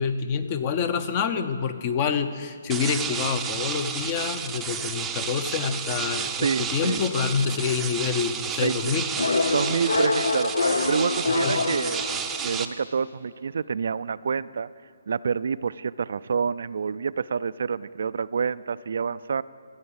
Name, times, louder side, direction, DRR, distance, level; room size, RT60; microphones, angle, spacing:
voice 1, 0.0-9.1 11.4-11.6, left 6 dB, 30° left, 11 dB, 0.7 m, -27 dB
sound 1, 2.7-12.7, right 7 dB, 10° right, 0.6 m, -31 dB
voice 2, 6.4-7.0 8.6-8.9 9.5-10.5 10.9-12.0 12.4-14.7 15.1-19.4, right 6 dB, 65° right, 16 dB, 0.3 m, -27 dB
sound 2, 9.2-12.7, left 3 dB, 75° left, 0.6 m, -26 dB
14.0 x 7.1 x 8.8 m, 2.2 s
hypercardioid pair, 150°, 0 cm